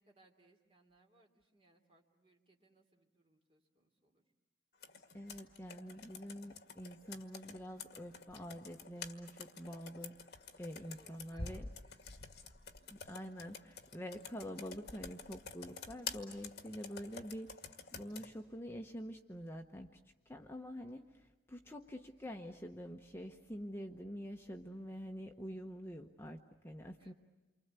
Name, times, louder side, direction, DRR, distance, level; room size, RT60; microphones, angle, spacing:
voice 1, 0.0-4.2 10.7-12.1 12.8-12.9 21.0-21.1 27.0-27.1, right 1 dB, 30° right, 2 dB, 2.9 m, -70 dB
Computer keyboard, 4.8-18.3, left 4 dB, 60° left, 2.0 m, -49 dB
voice 2, 5.1-10.2 10.5-11.7 12.9-17.5 17.9-20.0 20.3-21.0 21.5-27.1, equal, 15° left, 3 dB, 1.0 m, -46 dB
29.0 x 24.5 x 8.2 m, 1.1 s
head